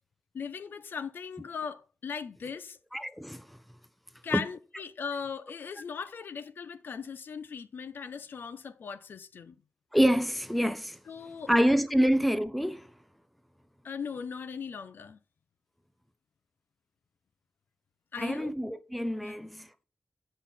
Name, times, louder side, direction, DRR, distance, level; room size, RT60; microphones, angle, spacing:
voice 1, 0.3-2.8 4.2-9.5 11.1-11.5 13.8-15.2 18.1-18.5 19.2-19.3, left 6 dB, 70° left, 0.8 m, -38 dB
voice 2, 2.9-3.6 4.3-4.4 9.9-11.0 11.5-12.9 18.2-19.8, equal, ahead, 0.7 m, -26 dB
8.3 x 5.7 x 5.7 m
wide cardioid pair, 90°, 4 cm